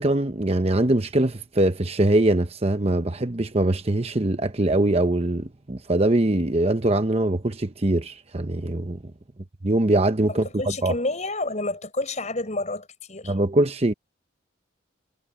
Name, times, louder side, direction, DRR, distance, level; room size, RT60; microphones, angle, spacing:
voice 1, 0.0-9.0 9.6-10.5 10.8-10.9 13.3-13.9, right 1 dB, 30° right, 0.9 m, -22 dB
voice 2, 10.6-13.3, left 2 dB, 35° left, 5.9 m, -29 dB
head